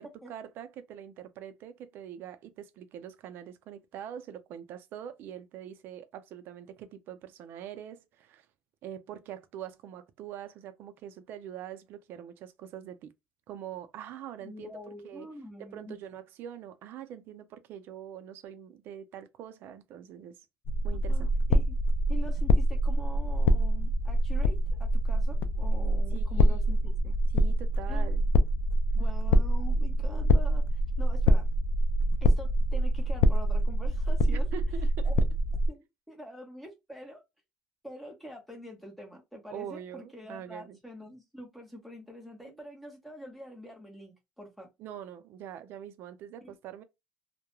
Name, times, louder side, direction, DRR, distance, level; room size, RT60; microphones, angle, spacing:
voice 1, 0.0-8.5 8.8-13.1 13.5-15.3 15.6-20.4 20.8-21.3 26.1-26.8 27.3-28.2 34.3-35.1 39.5-40.8 42.4-42.6 44.8-46.8, right 10 dB, 70° right, 0.5 m, -44 dB
voice 2, 14.4-16.0 21.1-21.7 22.1-27.2 27.9-28.1 28.9-30.6 31.0-31.5 32.2-34.5 35.0-35.1 35.7-37.2 37.8-44.7, equal, ahead, 0.9 m, -45 dB
sound 1, 20.7-35.7, equal, 75° left, 0.3 m, -25 dB
2.3 x 2.1 x 2.9 m
cardioid pair, 130°, 4 cm